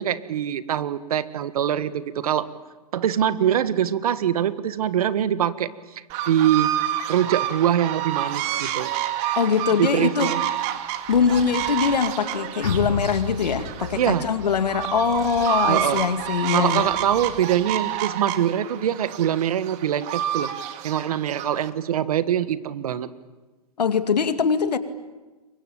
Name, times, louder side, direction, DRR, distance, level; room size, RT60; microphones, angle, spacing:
voice 1, 0.0-2.5 2.9-5.7 6.2-6.7 7.1-8.9 9.8-10.4 14.0-14.3 15.7-16.0 16.5-20.5 20.8-23.1, right 10 dB, 65° right, 14 dB, 1.6 m, -23 dB
sound 1, 6.1-21.7, right 12 dB, 35° right, 2.1 m, -29 dB
voice 2, 9.4-10.3 11.1-16.9 23.8-24.8, left 6 dB, 80° left, 9 dB, 2.3 m, -22 dB
Breathing, 10.8-18.2, left 1 dB, ahead, 4.3 m, -47 dB
sound 2, 12.6-17.1 17.4-17.5, left 4 dB, 65° left, 4.8 m, -34 dB
27.5 x 23.5 x 8.9 m, 1.2 s
hypercardioid pair, 130°, 20 cm